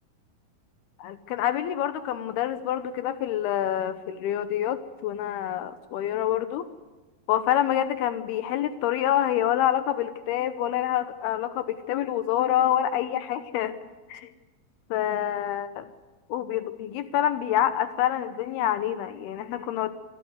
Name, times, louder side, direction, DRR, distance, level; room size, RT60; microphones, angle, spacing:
voice 1, 1.0-6.6 7.3-13.7 14.1-14.3 14.9-15.9 16.3-19.9, left 11 dB, 85° left, 11 dB, 2.9 m, -27 dB
26.0 x 14.5 x 9.5 m, 1.2 s
omnidirectional pair, 4.4 m